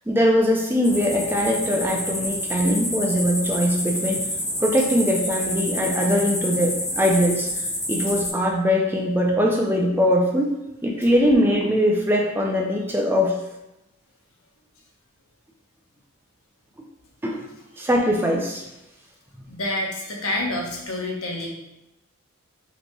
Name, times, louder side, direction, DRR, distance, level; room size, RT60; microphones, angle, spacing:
voice 1, 0.1-4.3 4.6-10.6 10.8-13.4 17.2-17.4 17.8-18.6, equal, 10° right, 0 dB, 0.3 m, -21 dB
sound 1, 0.8-8.3, left 1 dB, 15° left, 1.3 m, -28 dB
voice 2, 19.5-21.5, left 1 dB, 80° left, -1 dB, 0.9 m, -28 dB
5.2 x 3.0 x 2.2 m, 0.93 s
head